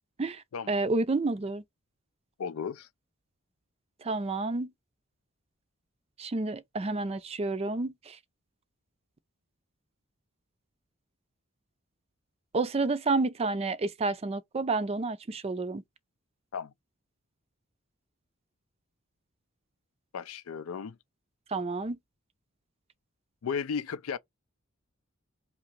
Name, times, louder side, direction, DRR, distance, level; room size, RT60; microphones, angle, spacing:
voice 1, 0.2-1.6 4.0-4.7 6.2-8.2 12.5-15.8 21.5-22.0, right 3 dB, 30° right, 0.4 m, -30 dB
voice 2, 2.4-2.9 16.5-16.7 20.1-21.0 23.4-24.2, left 6 dB, 80° left, 0.4 m, -34 dB
3.7 x 2.9 x 4.4 m
head